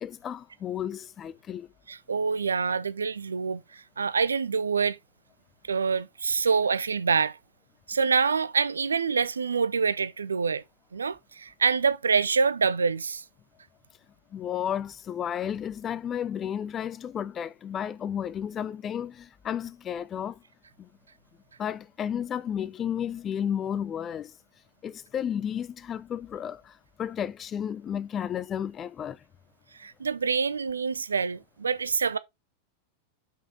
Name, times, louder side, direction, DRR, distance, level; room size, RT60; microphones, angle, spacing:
voice 1, 0.0-1.7 14.3-20.4 20.8-20.9 21.6-24.3 24.8-29.2, left 9 dB, 25° left, 0.4 m, -32 dB
voice 2, 1.9-5.0 5.7-7.4 7.9-10.6 10.9-13.2 29.8-32.2, right 5 dB, 75° right, 0.5 m, -26 dB
5.8 x 5.6 x 3.7 m
figure-of-eight pair, 90°, 0 cm